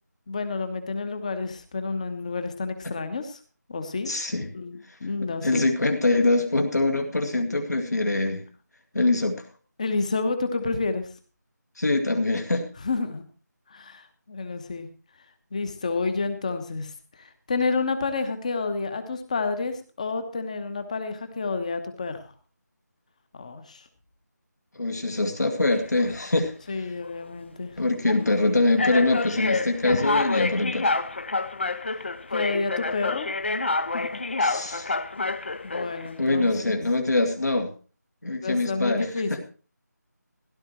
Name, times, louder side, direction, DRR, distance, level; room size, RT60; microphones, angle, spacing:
voice 1, 0.3-3.4 3.7-4.1 4.5-5.7 9.8-11.1 12.8-13.2 13.7-14.9 15.5-22.3 23.3-23.9 26.7-27.8 29.9-30.0 32.3-33.3 33.9-34.2 34.6-34.8 35.6-36.8 38.4-39.4, left 4 dB, 25° left, 10 dB, 1.1 m, -30 dB
voice 2, 4.1-4.5 5.4-8.4 8.9-9.4 11.8-12.7 24.8-26.5 27.8-30.9 34.4-34.9 36.2-37.7 38.2-39.4, left 2 dB, 65° left, 3 dB, 2.2 m, -24 dB
sound 1, 25.7-26.3 27.0-27.2 28.1-28.2 28.8-36.1, left 3 dB, 40° left, 0.7 m, -28 dB
16.5 x 11.5 x 3.1 m, 0.36 s
figure-of-eight pair, 165°, 10 cm